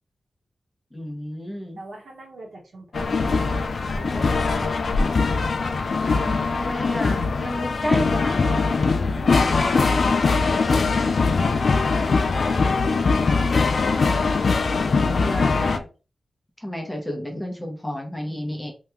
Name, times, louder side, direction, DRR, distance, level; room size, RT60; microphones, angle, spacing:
voice 1, 0.9-1.8 6.2-8.6 14.7-15.9 16.6-18.7, equal, 10° left, 1 dB, 0.7 m, -31 dB
voice 2, 1.8-4.9 9.0-13.6, right 2 dB, 80° right, -1 dB, 1.2 m, -42 dB
sound 1, 2.9-15.8, left 4 dB, 60° left, 0.4 m, -21 dB
2.8 x 2.3 x 3.4 m, 0.33 s
wide cardioid pair, 125°, 0 cm